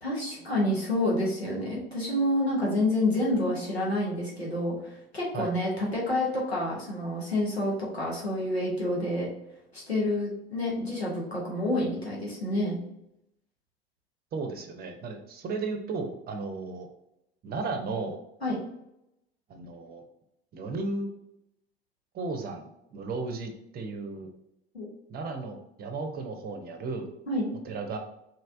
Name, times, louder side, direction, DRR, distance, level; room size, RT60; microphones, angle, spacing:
voice 1, 0.0-9.3 9.7-12.8 18.4-18.6 24.7-24.9 27.3-27.5, left 1 dB, 90° left, -5 dB, 1.2 m, -28 dB
voice 2, 14.3-16.9 17.4-18.2 19.5-20.0 20.5-21.1 22.1-22.6 22.9-24.3 25.1-27.1 27.6-28.0, right 3 dB, 30° right, 5 dB, 0.7 m, -34 dB
4.1 x 3.2 x 2.6 m, 0.84 s
figure-of-eight pair, 75°, 31 cm